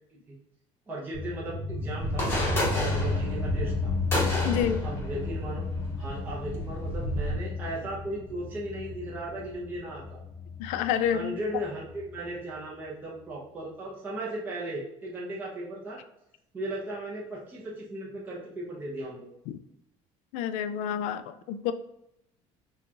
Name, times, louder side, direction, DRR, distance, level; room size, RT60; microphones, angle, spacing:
voice 1, 0.9-3.9 4.8-5.6 6.0-10.2 11.1-16.0 16.5-19.3, right 1 dB, 15° right, -5 dB, 0.8 m, -36 dB
sound 1, 1.1-12.2, left 3 dB, 50° left, 1.0 m, -33 dB
sound 2, 2.0-7.3, equal, 20° left, 1.0 m, -32 dB
voice 2, 4.4-4.8 10.6-11.4 19.5-19.6 20.3-21.7, left 9 dB, 70° left, 11 dB, 0.4 m, -29 dB
6.4 x 2.4 x 2.9 m, 0.80 s
cardioid pair, 175°, 13 cm